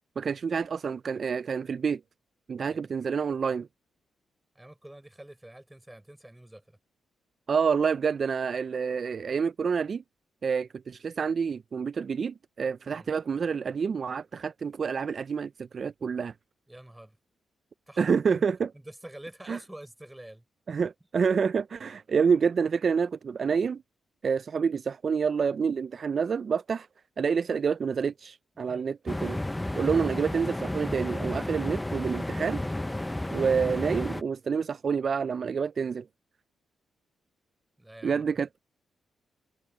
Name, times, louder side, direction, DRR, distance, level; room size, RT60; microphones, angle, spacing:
voice 1, 0.2-2.0 2.5-3.7 7.5-10.0 10.4-16.3 18.0-18.7 19.5-19.6 20.7-23.8 24.2-26.9 27.2-29.4 29.8-32.6 33.3-36.1 38.0-38.6, right 6 dB, 55° right, 0.4 m, -28 dB
voice 2, 4.5-6.8 12.9-13.1 16.7-17.2 17.9-18.5 18.7-20.4 28.5-28.9 37.8-38.3, right 1 dB, 10° right, 4.1 m, -47 dB
sound 1, 29.1-34.2, left 1 dB, 10° left, 0.6 m, -32 dB
supercardioid pair, 60°, 0 cm